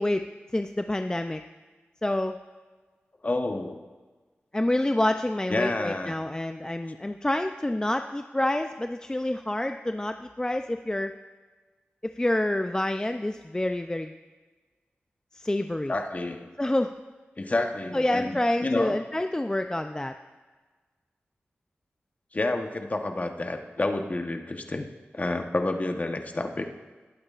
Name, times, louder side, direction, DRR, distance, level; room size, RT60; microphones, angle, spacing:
voice 1, 0.0-1.4 2.0-2.4 4.5-11.2 12.0-14.1 15.3-15.9 16.6-16.9 17.9-20.1, left 1 dB, 15° left, 7 dB, 0.4 m, -27 dB
voice 2, 3.2-3.8 5.5-6.1 15.9-16.5 17.4-19.0 22.3-24.9 25.1-26.7, left 2 dB, 40° left, 5 dB, 1.0 m, -29 dB
20.0 x 8.6 x 2.5 m, 1.3 s
cardioid pair, 55°, 4 cm